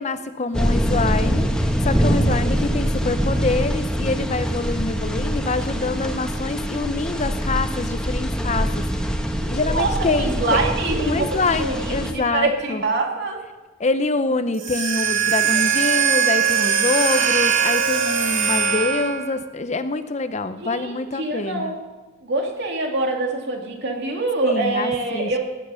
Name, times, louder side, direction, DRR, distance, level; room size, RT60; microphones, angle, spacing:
voice 1, 0.0-8.9 9.5-10.6 11.0-12.8 13.8-21.7 24.4-25.3, left 3 dB, 35° left, 11 dB, 0.6 m, -25 dB
sound 1, 0.5-12.1, equal, 5° left, 1.2 m, -24 dB
voice 2, 2.1-2.5 9.4-13.4 15.5-15.6 20.6-21.8 22.2-25.4, right 2 dB, 60° right, 1 dB, 2.5 m, -25 dB
sound 2, 14.5-19.3, right 8 dB, 75° right, 2.1 m, -20 dB
18.5 x 9.3 x 5.6 m, 1.2 s
head